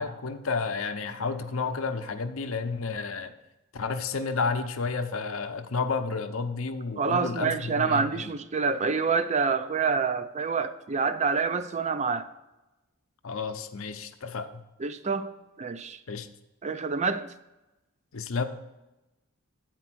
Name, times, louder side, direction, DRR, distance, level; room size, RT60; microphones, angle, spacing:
voice 1, 0.0-3.3 3.7-8.3 13.2-14.5 16.1-16.3 18.1-18.5, left 4 dB, 70° left, 0.7 m, -31 dB
voice 2, 7.0-12.3 14.8-15.3 15.6-16.0 16.6-17.3, right 5 dB, 35° right, 0.5 m, -27 dB
9.2 x 4.4 x 6.1 m
head